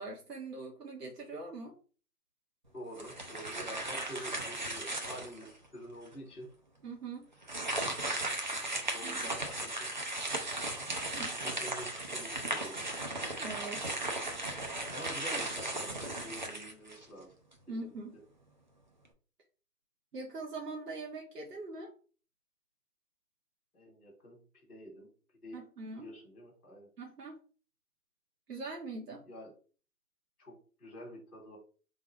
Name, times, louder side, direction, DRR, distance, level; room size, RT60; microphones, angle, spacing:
voice 1, 0.0-1.7 6.8-7.3 9.0-9.4 11.1-11.4 13.4-13.8 17.7-18.1 20.1-21.9 25.5-26.1 27.0-27.4 28.5-29.2, right 3 dB, 80° right, -1 dB, 1.5 m, -42 dB
voice 2, 2.7-6.4 8.7-9.8 11.4-12.8 14.9-17.3 23.7-24.4 24.7-25.1 25.4-25.6 25.9-26.9 29.2-29.5 30.4-30.5 30.8-31.6, equal, ahead, -15 dB, 0.9 m, -47 dB
sound 1, 2.9-5.5 6.1-6.2 7.4-17.2, right 2 dB, 30° right, 0.6 m, -36 dB
3.7 x 2.9 x 4.5 m, 0.38 s
hypercardioid pair, 160°, 47 cm